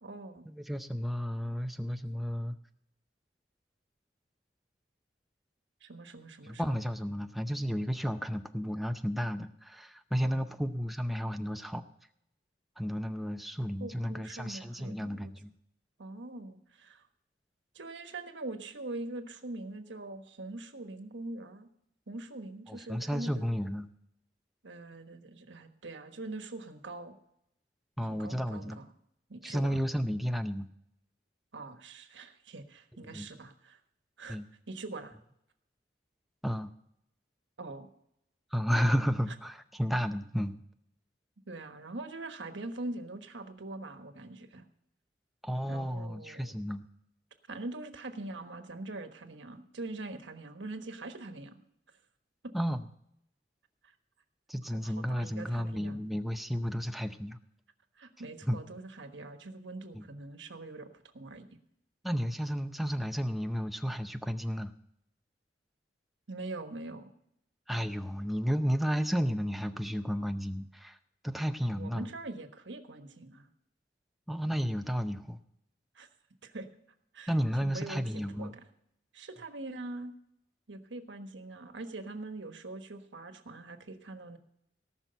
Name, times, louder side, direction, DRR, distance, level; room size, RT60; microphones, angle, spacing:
voice 1, 0.0-0.5 5.8-6.8 10.2-10.8 13.8-15.3 16.0-17.0 17.7-21.7 22.1-23.5 24.6-27.2 28.1-28.9 29.3-29.8 31.5-33.8 34.2-34.4 34.7-35.2 37.6-37.9 41.5-44.7 45.7-46.6 47.5-51.6 52.4-52.5 54.7-56.0 58.0-61.5 66.3-67.1 71.7-73.5 75.9-76.1 76.4-76.7 77.1-77.3 77.6-78.6 79.1-80.1 80.7-84.4, right 2 dB, 85° right, 7 dB, 1.3 m, -43 dB
voice 2, 0.5-2.5 6.4-11.8 12.8-15.5 22.7-23.9 28.0-28.8 29.4-30.7 33.0-33.3 34.3-34.5 36.4-36.7 38.5-40.6 45.4-46.9 52.5-52.8 54.5-57.4 58.5-58.6 59.9-60.0 62.0-64.7 67.7-71.0 71.2-72.1 74.3-75.4 77.3-78.5, equal, ahead, 7 dB, 0.6 m, -32 dB
18.0 x 6.0 x 6.8 m, 0.76 s
head